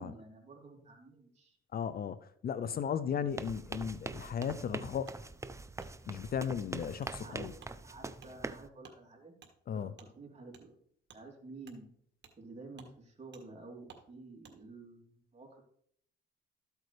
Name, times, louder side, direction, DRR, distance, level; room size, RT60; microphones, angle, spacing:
voice 1, 0.0-1.6 7.2-9.3 9.7-10.8 11.1-11.9 12.4-15.6, right 3 dB, 35° right, 3.3 m, -51 dB
voice 2, 1.7-5.1 6.1-7.5 9.7-9.9, left 7 dB, 50° left, 0.5 m, -36 dB
sound 1, 3.3-8.7, right 3 dB, 15° right, 0.5 m, -43 dB
Wood, 4.4-4.6 5.0-5.2 5.8-5.9 6.4-6.5 7.0-7.1 7.6-7.7 8.2-8.3 8.8-9.0 9.4-9.5 10.0-10.1 10.5-10.6 11.1-11.2 11.6-11.8 12.2-12.4 12.7-12.9 13.3-13.4 13.9-14.0 14.4-14.6, right 6 dB, 60° right, 1.8 m, -56 dB
13.0 x 8.1 x 3.3 m
cardioid pair, 90°, 20 cm